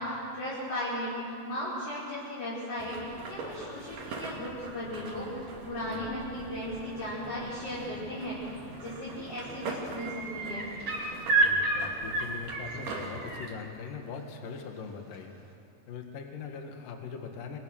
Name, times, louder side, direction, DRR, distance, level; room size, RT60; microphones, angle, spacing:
voice 1, 0.0-10.6, left 1 dB, 40° left, -9 dB, 6.6 m, -36 dB
sound 1, 2.8-13.5, right 3 dB, 85° right, 4.7 m, -42 dB
sound 2, 8.8-9.1 9.4-13.5 15.1-15.2, right 2 dB, 40° right, 4.4 m, -30 dB
voice 2, 11.4-15.3 15.9-17.6, left 5 dB, 65° left, 3 dB, 3.4 m, -41 dB
30.0 x 23.0 x 6.5 m, 2.5 s
omnidirectional pair, 4.3 m